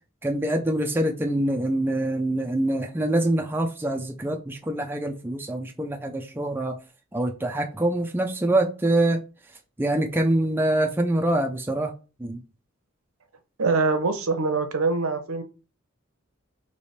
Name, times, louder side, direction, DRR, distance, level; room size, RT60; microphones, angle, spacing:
voice 1, 0.2-6.7 7.1-9.2 9.8-11.9 12.2-12.4, right 1 dB, 10° right, 3 dB, 0.4 m, -25 dB
voice 2, 13.6-15.4, right 3 dB, 85° right, 8 dB, 0.8 m, -24 dB
3.3 x 3.0 x 4.2 m, 0.33 s
head